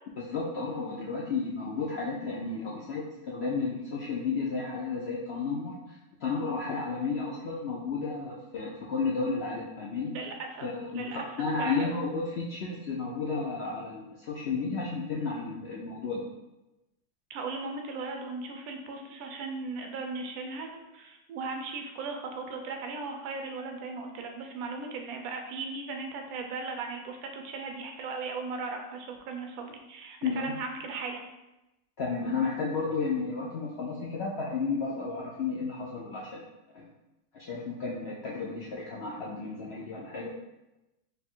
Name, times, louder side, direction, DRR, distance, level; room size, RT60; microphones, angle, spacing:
voice 1, 0.2-5.7 6.2-10.1 10.6-16.2 30.2-30.5 32.0-36.4 36.7-36.9 37.3-40.3, left 4 dB, 85° left, -4 dB, 0.5 m, -32 dB
voice 2, 10.1-10.7 10.9-11.9 17.3-31.3, right 4 dB, 70° right, 4 dB, 1.0 m, -37 dB
3.3 x 2.4 x 4.3 m, 0.98 s
omnidirectional pair, 1.7 m